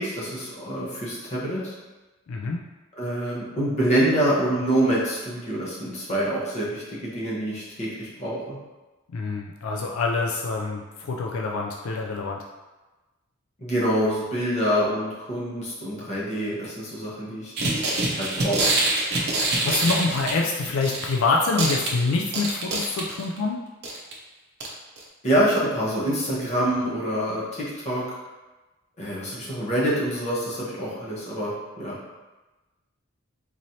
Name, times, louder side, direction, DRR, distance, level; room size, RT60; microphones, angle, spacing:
voice 1, 0.0-1.7 3.0-8.6 13.6-17.5 18.2-18.6 25.2-28.0 29.0-32.0, right 1 dB, 30° left, -6 dB, 1.0 m, -26 dB
voice 2, 2.3-2.6 9.1-12.4 19.3-23.6, left 3 dB, 80° left, 0 dB, 0.4 m, -26 dB
sound 1, 17.6-21.2 21.4-23.4 23.8-24.1 24.6-24.7 25.0-25.1, right 2 dB, 50° right, 0.7 m, -25 dB
3.9 x 3.1 x 2.8 m, 1.1 s
head